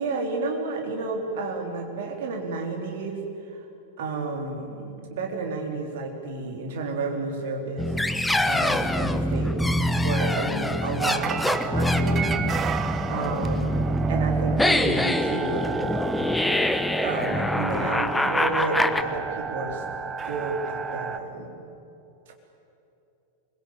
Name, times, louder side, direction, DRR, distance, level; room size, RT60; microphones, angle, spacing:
voice 1, 0.0-3.2 3.5-3.6 4.0-7.9 8.5-9.6 10.0-12.4 13.1-16.0 17.0-19.8 20.2-21.5, right 3 dB, 55° right, 2 dB, 4.0 m, -31 dB
sound 1, 7.8-19.0, left 1 dB, 5° left, 1.1 m, -25 dB
sound 2, 11.0-21.2, right 6 dB, 25° right, 1.1 m, -33 dB
25.0 x 22.5 x 8.8 m, 2.9 s
figure-of-eight pair, 90°, 0 cm